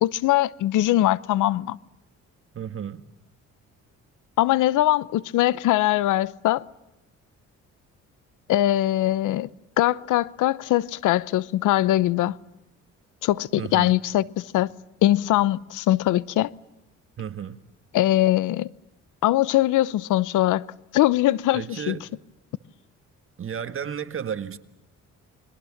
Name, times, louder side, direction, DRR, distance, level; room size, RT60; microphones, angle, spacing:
voice 1, 0.0-1.8 4.4-6.6 8.5-9.5 9.8-12.4 13.2-14.7 15.0-16.5 17.9-18.7 19.2-20.7 20.9-22.0, left 15 dB, 85° left, 0.8 m, -21 dB
voice 2, 2.5-3.1 13.6-14.0 17.2-17.6 21.5-22.1 23.4-24.6, right 8 dB, 45° right, 1.8 m, -33 dB
29.5 x 22.0 x 7.3 m
cardioid pair, 90°, 30 cm